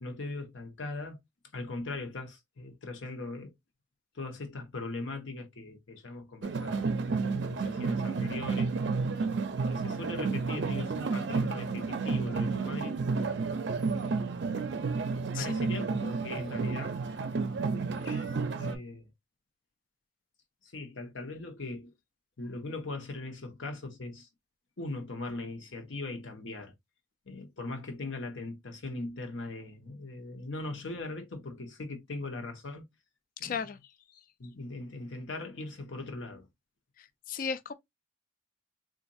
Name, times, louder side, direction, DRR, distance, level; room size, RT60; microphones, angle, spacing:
voice 1, 0.0-1.2 1.5-3.5 4.1-6.9 7.5-9.0 9.7-12.9 15.4-16.9 18.0-18.3 18.6-19.1 20.6-21.9 22.4-24.3 24.8-26.7 27.3-32.8 33.4-33.7 34.4-36.5, left 2 dB, 70° left, 0.9 m, -40 dB
sound 1, 6.4-18.8, right 4 dB, 55° right, 0.5 m, -31 dB
voice 2, 33.4-33.8 37.0-37.7, left 6 dB, 45° left, 0.3 m, -35 dB
3.9 x 2.5 x 2.6 m
head